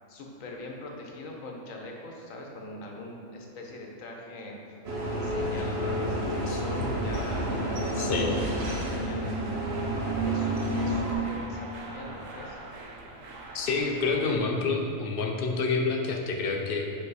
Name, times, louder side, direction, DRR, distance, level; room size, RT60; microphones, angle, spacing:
voice 1, 0.1-4.6 5.1-9.3 10.2-12.6, left 1 dB, 90° left, 0 dB, 1.3 m, -42 dB
sound 1, 4.8-11.1, right 1 dB, 55° right, 1.1 m, -29 dB
sound 2, 5.3-14.4, right 2 dB, 90° right, 1.2 m, -45 dB
voice 2, 6.5-6.9 8.0-8.3 13.5-16.8, left 4 dB, 55° left, 2 dB, 0.7 m, -28 dB
5.7 x 5.7 x 4.0 m, 2.7 s
omnidirectional pair, 1.3 m